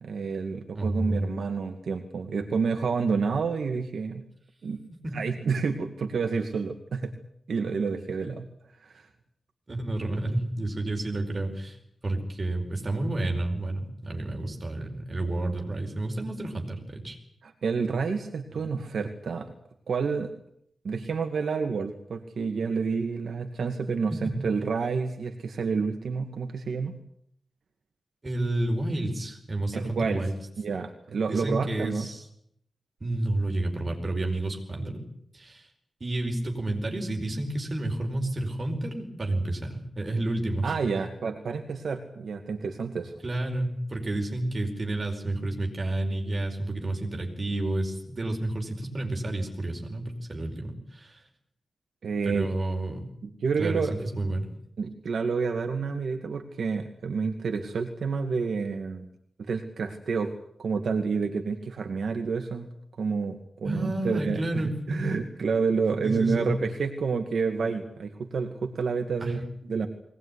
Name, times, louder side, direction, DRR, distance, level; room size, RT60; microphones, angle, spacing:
voice 1, 0.0-4.2 4.6-4.8 5.1-7.1 7.5-8.4 8.8-9.1 17.4-19.5 19.9-20.3 20.8-26.9 29.7-30.2 30.6-32.1 40.6-43.2 52.0-52.5 53.2-54.0 54.8-59.1 59.4-60.3 60.6-62.7 63.0-69.9, right 5 dB, 65° right, 4 dB, 2.2 m, -29 dB
voice 2, 0.7-1.3 5.0-5.1 9.7-11.8 12.0-17.2 18.5-18.8 24.1-24.3 28.2-30.3 31.3-32.2 33.0-35.0 35.3-35.7 36.0-40.7 43.2-51.2 52.2-53.0 53.6-54.5 63.6-65.1 66.0-66.6 69.2-69.4, right 1 dB, 25° right, 2 dB, 5.0 m, -30 dB
22.0 x 19.0 x 9.9 m, 0.71 s
wide cardioid pair, 175°, 0 cm